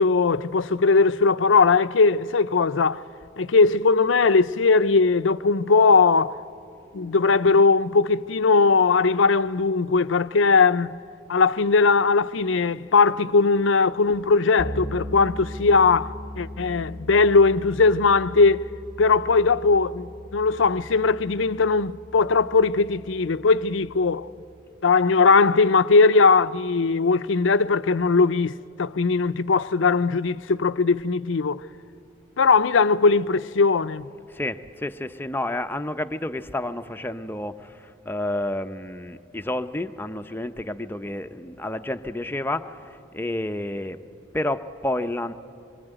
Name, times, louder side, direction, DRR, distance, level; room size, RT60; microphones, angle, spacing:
voice 1, 0.0-3.0 3.4-6.4 6.9-11.0 11.3-18.6 19.0-24.3 24.8-31.6 32.4-34.1, left 4 dB, 85° left, 0.6 m, -19 dB
Bass guitar, 14.6-24.2, equal, 25° right, 3.2 m, -39 dB
voice 2, 34.3-44.0 44.3-45.3, left 1 dB, 10° left, 0.7 m, -30 dB
26.0 x 23.5 x 9.0 m
head